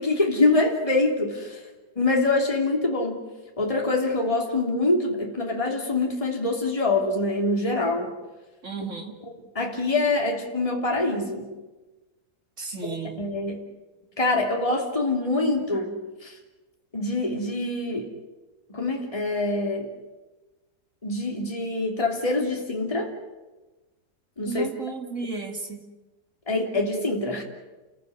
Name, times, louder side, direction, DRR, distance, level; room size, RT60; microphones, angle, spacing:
voice 1, 0.0-1.6 2.0-3.2 3.6-8.1 9.2-11.5 12.8-13.6 14.2-15.9 16.2-16.3 16.9-18.1 18.7-19.9 21.0-23.1 24.4-24.7 26.5-27.4, left 2 dB, 20° left, 3.2 m, -25 dB
voice 2, 8.6-9.1 12.6-13.2 24.5-25.8, right 4 dB, 50° right, 3.0 m, -33 dB
30.0 x 14.5 x 9.4 m
omnidirectional pair, 1.7 m